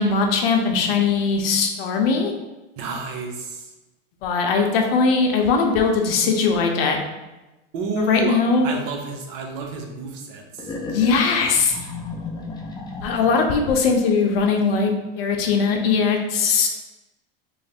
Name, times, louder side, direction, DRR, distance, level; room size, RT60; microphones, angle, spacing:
voice 1, 0.0-2.3 4.2-7.0 8.0-8.7 10.8-11.8 13.0-16.7, left 4 dB, 75° left, 3 dB, 0.7 m, -20 dB
voice 2, 2.8-3.7 7.7-8.4 8.6-10.7, right 3 dB, 60° right, 2 dB, 0.8 m, -29 dB
sound 1, 10.6-13.7, left 3 dB, 15° left, 0.4 m, -34 dB
3.2 x 2.1 x 4.2 m, 1.1 s
supercardioid pair, 120°, 29 cm